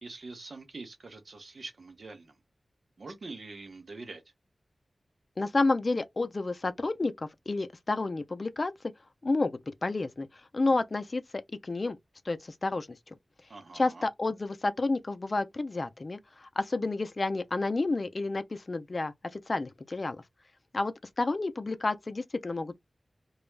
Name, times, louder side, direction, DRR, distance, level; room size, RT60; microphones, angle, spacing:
voice 1, 0.0-2.4 3.0-4.2 13.5-14.1, right 3 dB, 70° right, 0.7 m, -44 dB
voice 2, 5.4-8.7 9.2-10.3 10.5-12.0 12.3-13.1 13.7-20.2 20.7-22.8, left 3 dB, 50° left, 0.4 m, -30 dB
2.3 x 2.0 x 3.1 m
wide cardioid pair, 60°, 0 cm